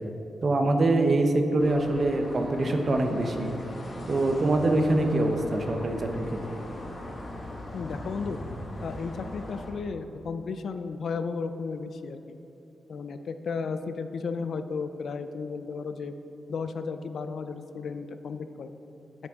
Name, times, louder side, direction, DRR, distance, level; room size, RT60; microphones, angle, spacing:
voice 1, 0.4-3.5 4.1-6.6, right 2 dB, 35° right, 4 dB, 0.7 m, -24 dB
sound 1, 1.6-9.7, left 1 dB, 30° left, 1.1 m, -40 dB
voice 2, 7.7-8.4 8.8-12.4 12.9-16.1 16.5-18.7, left 5 dB, 60° left, 10 dB, 0.3 m, -34 dB
9.2 x 7.6 x 3.6 m, 2.8 s
wide cardioid pair, 165°, 0 cm